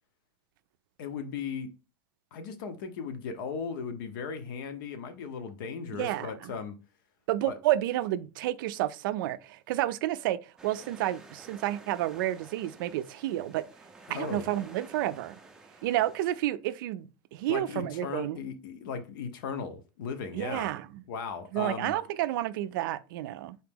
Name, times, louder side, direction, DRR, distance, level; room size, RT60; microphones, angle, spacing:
voice 1, 1.0-1.7 2.3-6.8 7.4-7.6 14.1-14.5 17.5-20.7 21.1-21.9, left 5 dB, 70° left, 0.8 m, -37 dB
voice 2, 5.9-6.5 7.3-13.6 14.1-15.4 15.8-18.4 20.3-21.0 21.5-23.6, right 14 dB, 70° right, 0.4 m, -30 dB
sound 1, 10.6-16.4, right 3 dB, 5° right, 0.4 m, -51 dB
4.1 x 2.9 x 3.6 m
supercardioid pair, 160°, 11 cm